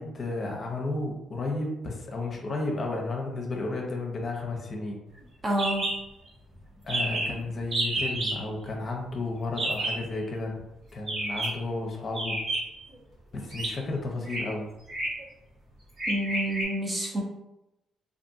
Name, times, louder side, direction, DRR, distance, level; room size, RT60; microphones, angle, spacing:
voice 1, 0.0-5.0 6.8-10.6 10.9-12.4 13.3-14.7, left 2 dB, 45° left, 1 dB, 0.6 m, -32 dB
voice 2, 5.4-5.9 16.1-17.2, right 1 dB, 30° right, -1 dB, 0.7 m, -28 dB
sound 1, 5.6-6.0 6.3-6.4 6.6-6.7 6.9-7.3 7.7-8.4 9.6-10.0 11.0-11.6 12.1-12.8 13.5-13.7 14.2-14.4 14.9-15.2 16.0-16.6, right 1 dB, 60° right, 1.3 m, -30 dB
2.6 x 2.5 x 2.6 m, 0.91 s
cardioid pair, 90°, 0 cm